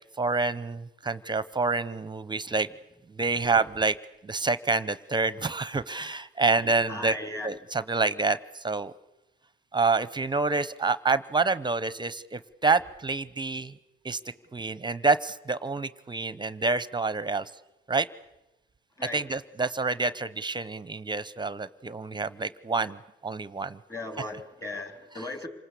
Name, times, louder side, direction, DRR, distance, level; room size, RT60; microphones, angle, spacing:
voice 1, 0.2-2.7 3.1-4.0 4.2-7.2 7.4-8.9 9.7-13.7 14.0-14.2 14.5-17.5 17.9-18.1 19.1-23.8 25.1-25.2, right 3 dB, 20° right, 16 dB, 0.8 m, -27 dB
voice 2, 6.9-7.5 19.0-19.2 23.9-25.5, left 2 dB, 15° left, 6 dB, 3.5 m, -37 dB
27.5 x 19.5 x 8.4 m, 0.97 s
cardioid pair, 90°, 20 cm